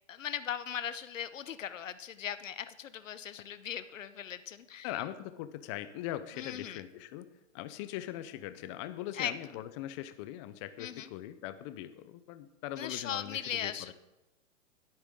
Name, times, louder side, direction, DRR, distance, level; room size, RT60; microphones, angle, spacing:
voice 1, 0.1-4.9 6.4-6.8 9.1-9.3 10.8-11.1 12.8-13.9, left 9 dB, 80° left, 14 dB, 1.0 m, -38 dB
voice 2, 4.8-7.3 7.5-13.9, left 13 dB, 25° left, 12 dB, 0.6 m, -41 dB
21.5 x 8.8 x 3.7 m, 0.99 s
hypercardioid pair, 140°, 38 cm